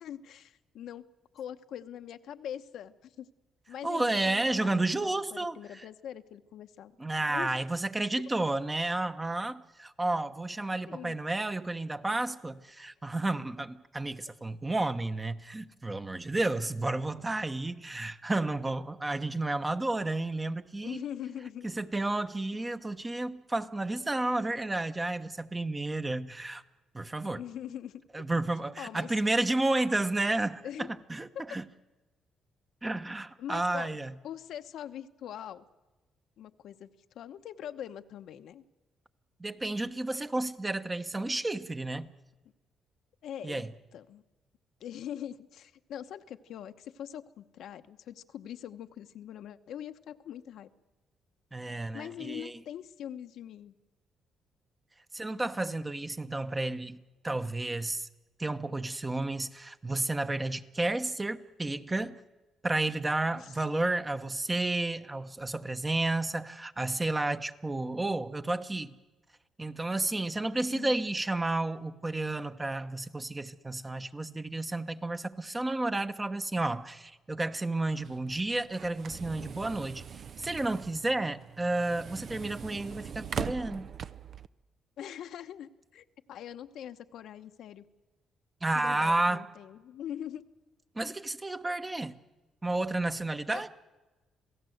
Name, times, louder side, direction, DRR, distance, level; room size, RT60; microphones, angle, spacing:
voice 1, 0.0-1.0 1.3-3.3 3.7-6.9 7.3-7.6 10.8-11.2 20.8-21.7 27.2-28.0 28.8-29.1 30.6-31.0 31.3-31.4 33.4-34.0 34.2-35.6 36.4-36.9 37.1-38.6 43.2-43.6 43.9-44.2 44.8-50.7 51.9-53.8 63.4-63.6 70.7-71.0 85.0-87.8 88.7-90.4 93.5-93.7, left 10 dB, 75° left, 0.9 m, -42 dB
voice 2, 3.8-5.6 7.0-21.0 21.6-26.6 26.9-27.4 28.1-31.6 32.8-34.1 39.4-42.1 43.4-43.7 51.5-52.5 55.1-58.1 58.4-62.2 62.6-69.0 69.6-80.0 80.4-83.9 88.6-89.5 90.9-92.1 92.6-93.7, right 2 dB, 20° right, 1.1 m, -31 dB
sound 1, 77.9-84.5, right 7 dB, 55° right, 0.6 m, -41 dB
27.0 x 17.0 x 7.9 m
cardioid pair, 90°, 0 cm